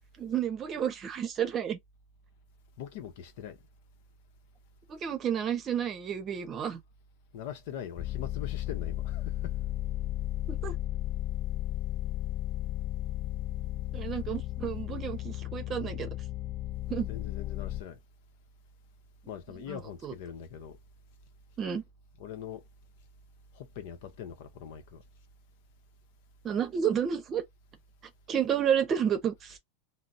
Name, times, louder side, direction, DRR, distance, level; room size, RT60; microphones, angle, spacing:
voice 1, 0.2-1.8 4.9-6.8 10.5-10.7 13.9-16.1 16.9-17.1 19.7-20.1 21.6-21.8 26.4-27.4 28.3-29.6, right 8 dB, 30° right, 0.7 m, -31 dB
voice 2, 2.8-3.6 7.3-9.6 17.1-18.0 19.3-20.8 22.2-22.6 23.5-25.0, left 9 dB, 70° left, 0.7 m, -42 dB
sound 1, 8.0-17.8, left 15 dB, 40° left, 0.3 m, -34 dB
3.8 x 2.0 x 2.4 m
supercardioid pair, 120°, 0 cm